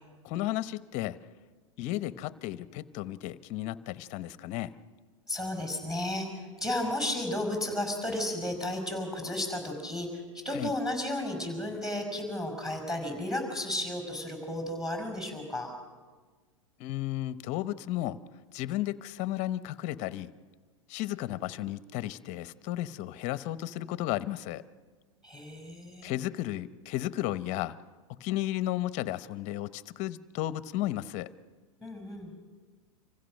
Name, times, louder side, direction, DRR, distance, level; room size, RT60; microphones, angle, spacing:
voice 1, 0.2-1.2 1.8-4.7 10.5-10.7 16.8-18.2 18.5-20.3 20.9-24.6 26.0-27.8 28.1-31.3, left 14 dB, 45° left, 15 dB, 0.8 m, -34 dB
voice 2, 5.3-15.7 25.2-26.1 31.8-32.3, left 1 dB, 5° right, 4 dB, 5.8 m, -33 dB
26.0 x 16.0 x 6.5 m, 1.4 s
hypercardioid pair, 120°, 17 cm